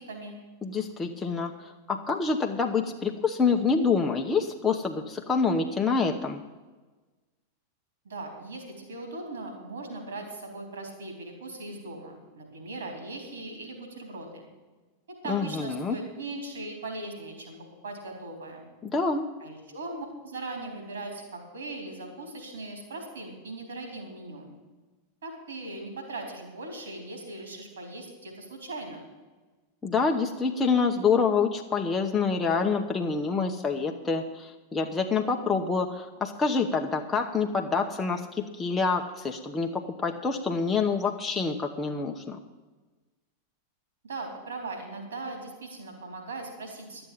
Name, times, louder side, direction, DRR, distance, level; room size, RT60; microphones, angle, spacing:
voice 1, 0.6-6.4 15.3-16.0 18.8-19.2 29.8-42.4, left 5 dB, 15° left, 1 dB, 0.9 m, -27 dB
voice 2, 8.0-14.5 15.2-17.6 17.8-18.7 19.4-24.5 25.2-29.0 44.0-47.1, right 2 dB, 70° right, 3 dB, 3.7 m, -39 dB
12.0 x 7.9 x 8.6 m, 1.3 s
figure-of-eight pair, 90°, 0 cm